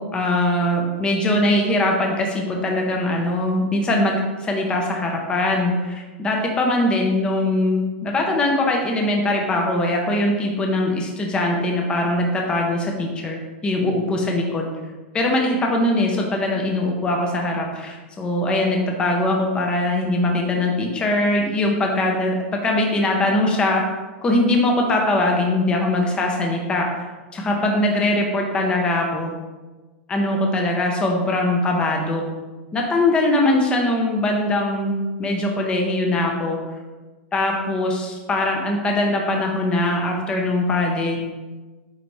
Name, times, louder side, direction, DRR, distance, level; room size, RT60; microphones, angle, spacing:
voice 1, 0.0-14.7 15.1-23.8 24.2-26.9 27.3-29.3 30.1-32.2 32.7-34.9 35.2-36.6 37.3-41.2, left 1 dB, 15° left, 1 dB, 0.8 m, -21 dB
9.2 x 3.4 x 3.2 m, 1.2 s
supercardioid pair, 155°, 6 cm